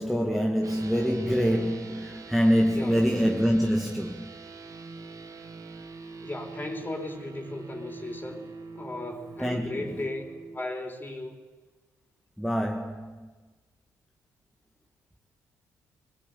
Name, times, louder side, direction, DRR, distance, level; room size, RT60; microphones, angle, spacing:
voice 1, 0.0-4.4 9.4-10.0 12.4-13.3, equal, ahead, 2.1 m, -25 dB
sound 1, 0.6-10.6, right 4 dB, 45° right, 2.9 m, -44 dB
voice 2, 6.2-8.4 8.8-10.2 10.5-11.3, left 2 dB, 25° left, 4.5 m, -36 dB
20.5 x 20.0 x 8.7 m
hypercardioid pair, 50°, 8 cm